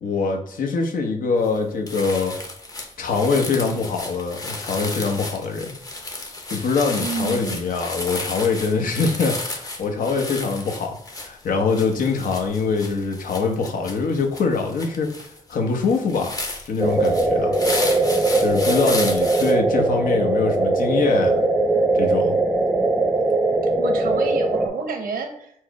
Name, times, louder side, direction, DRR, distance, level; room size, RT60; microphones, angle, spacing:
voice 1, 0.0-2.3 3.0-5.7 6.5-16.4 16.6-17.5 18.4-21.4 21.9-22.4, left 4 dB, 75° left, 2 dB, 0.8 m, -23 dB
sound 1, 1.4-1.6 1.9-19.5, left 2 dB, 25° left, 0.7 m, -33 dB
voice 2, 7.0-7.7 23.8-25.5, right 4 dB, 85° right, 5 dB, 0.8 m, -29 dB
sound 2, 16.8-24.7, right 2 dB, 5° right, 0.6 m, -20 dB
4.5 x 2.0 x 4.6 m, 0.67 s
cardioid pair, 105°, 14 cm